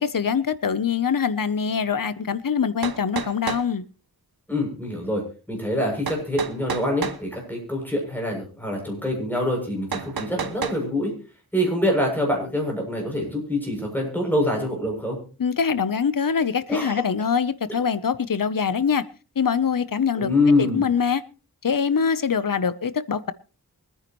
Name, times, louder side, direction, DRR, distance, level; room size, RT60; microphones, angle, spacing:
voice 1, 0.0-3.8 15.4-19.1 19.4-20.3 20.6-21.2 21.6-23.3, left 6 dB, 65° left, 0.9 m, -23 dB
sound 1, 2.3-2.4 2.8-3.7 6.1-7.2 9.9-10.8, right 6 dB, 80° right, 1.1 m, -30 dB
voice 2, 4.5-5.2 5.5-11.1 11.5-15.2 16.7-17.0 20.2-20.8, left 1 dB, 5° left, 7.2 m, -25 dB
24.0 x 9.7 x 3.1 m
wide cardioid pair, 85°, 36 cm